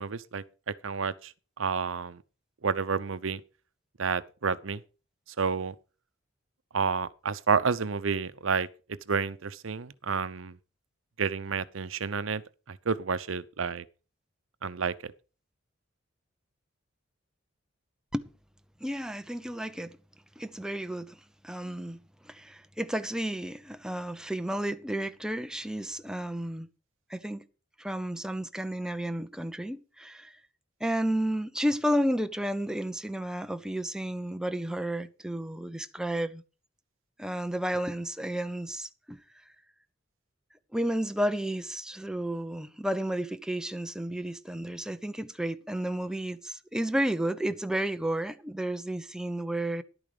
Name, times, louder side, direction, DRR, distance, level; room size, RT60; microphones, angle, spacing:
voice 1, 0.0-2.2 2.6-3.4 4.0-4.8 5.4-5.7 6.7-8.7 9.1-10.6 11.2-12.4 12.7-13.8 14.6-15.1, right 5 dB, 80° right, 0.7 m, -30 dB
voice 2, 18.8-20.0 20.4-26.7 27.1-27.4 27.8-30.4 30.8-36.4 37.2-39.2 40.7-49.8, right 1 dB, 5° right, 0.7 m, -32 dB
11.5 x 9.0 x 4.9 m
head